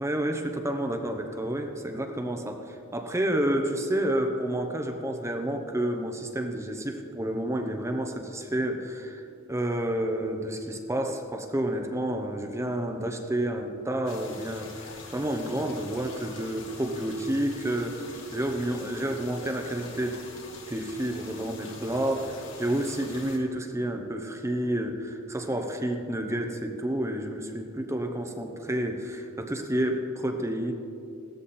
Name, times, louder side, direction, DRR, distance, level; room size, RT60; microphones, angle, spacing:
voice 1, 0.0-20.2 20.7-30.7, right 1 dB, 15° right, 4 dB, 0.9 m, -30 dB
sound 1, 14.1-23.4, left 3 dB, 60° left, 2.5 m, -45 dB
17.0 x 13.0 x 4.3 m, 2.5 s
head